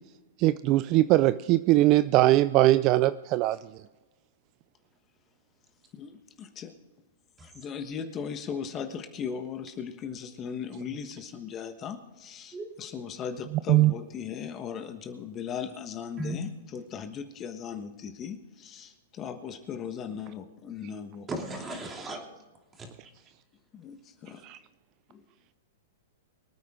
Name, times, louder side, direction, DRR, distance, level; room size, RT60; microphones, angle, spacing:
voice 1, 0.4-3.6 13.7-13.9 24.4-24.6, right 16 dB, 35° right, 15 dB, 0.4 m, -21 dB
voice 2, 5.9-6.7 7.4-21.3 23.7-24.4 25.1-25.2, left 7 dB, 25° left, 7 dB, 1.3 m, -38 dB
voice 3, 21.3-22.2 22.8-22.9, right 2 dB, 15° right, 1 dB, 3.0 m, -35 dB
24.5 x 9.2 x 3.7 m, 1.2 s
hypercardioid pair, 135°, 0 cm